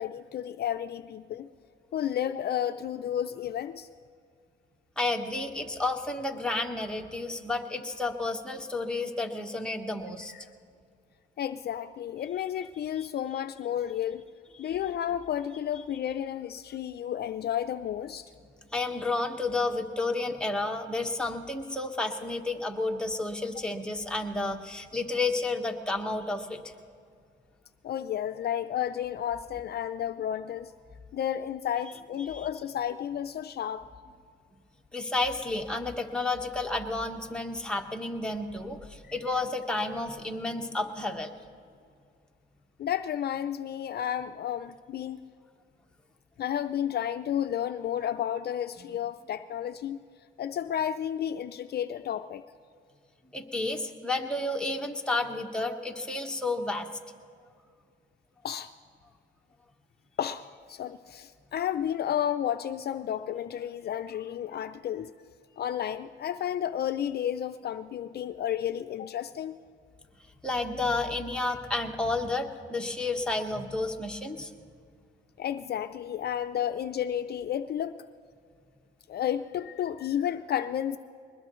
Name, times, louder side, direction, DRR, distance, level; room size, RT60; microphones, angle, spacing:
voice 1, 0.0-1.5 1.9-3.9 10.3-10.4 11.4-14.2 14.6-18.3 27.8-30.7 31.1-33.9 42.8-45.2 46.4-50.0 50.4-52.4 58.4-58.7 60.2-65.1 65.6-69.6 75.4-78.0 79.1-81.0, left 10 dB, 55° left, 10 dB, 0.5 m, -32 dB
voice 2, 5.0-10.3 13.0-13.1 14.6-14.7 18.7-26.7 32.3-32.5 34.9-41.4 53.3-56.9 70.4-74.5, left 2 dB, 5° left, 1 dB, 1.3 m, -31 dB
21.5 x 20.5 x 3.1 m, 2.3 s
cardioid pair, 90°, 20 cm